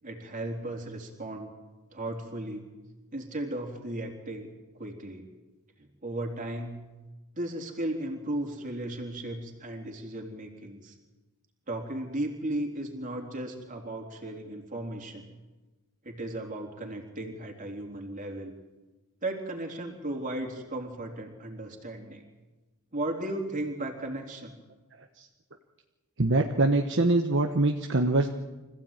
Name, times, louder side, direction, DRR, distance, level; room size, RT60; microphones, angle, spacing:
voice 1, 0.0-1.5 1.9-2.7 3.1-4.5 4.7-5.3 5.8-6.8 7.4-11.0 11.7-15.3 16.0-18.5 19.2-22.2 22.9-24.5, right 1 dB, 35° right, 2 dB, 3.7 m, -35 dB
voice 2, 26.2-28.3, right 2 dB, 55° right, 4 dB, 1.2 m, -24 dB
25.5 x 16.0 x 9.1 m, 1.2 s
head